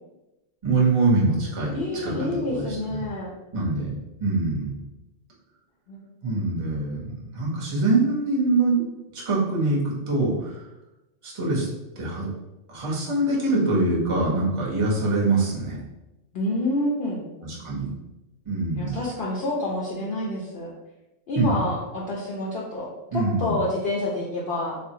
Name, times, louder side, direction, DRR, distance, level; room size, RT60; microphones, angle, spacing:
voice 1, 0.6-2.1 2.5-3.0 3.5-3.9 4.2-4.7 6.2-8.8 9.1-10.6 11.2-11.7 12.0-12.3 12.7-15.8 17.4-17.9 18.5-19.0 21.4-21.6 23.1-23.6, right 2 dB, 30° right, -4 dB, 0.7 m, -24 dB
voice 2, 1.7-3.3 5.9-6.0 16.3-17.2 18.8-20.7 21.3-22.9 23.1-24.8, left 1 dB, 60° left, -4 dB, 0.7 m, -28 dB
3.5 x 2.0 x 2.7 m, 0.98 s
omnidirectional pair, 1.3 m